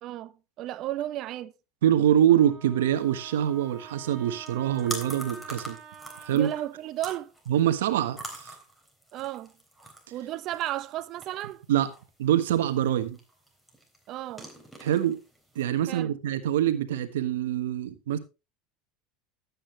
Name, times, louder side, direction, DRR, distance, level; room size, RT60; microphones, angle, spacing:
voice 1, 0.0-1.5 6.3-7.3 9.1-9.5 10.1-11.6 14.1-14.5 15.9-16.1, right 14 dB, 50° right, 0.8 m, -34 dB
voice 2, 1.8-5.8 6.3-6.5 7.5-8.5 11.7-11.9 12.2-13.2 14.8-15.2 15.5-18.2, right 11 dB, 90° right, 1.4 m, -24 dB
Wind instrument woodwind instrument, 2.3-6.7, right 4 dB, 35° right, 2.4 m, -47 dB
sound 1, 3.0-15.7, right 1 dB, 5° left, 3.7 m, -45 dB
12.0 x 8.7 x 3.3 m
supercardioid pair, 110°, 0 cm